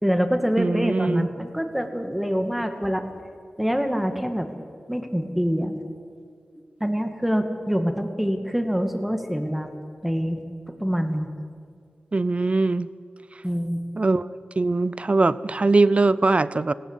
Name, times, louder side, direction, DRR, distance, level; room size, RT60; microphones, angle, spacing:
voice 1, 0.0-3.0 3.6-4.5 4.9-5.8 6.8-9.7 10.0-10.4 10.8-11.3 13.4-13.8, equal, 5° right, 6 dB, 2.1 m, -25 dB
voice 2, 0.6-1.3 12.1-12.9 14.0-14.3 14.6-16.7, right 3 dB, 40° right, 18 dB, 0.6 m, -21 dB
19.5 x 17.5 x 8.3 m, 2.2 s
wide cardioid pair, 70°, 3 cm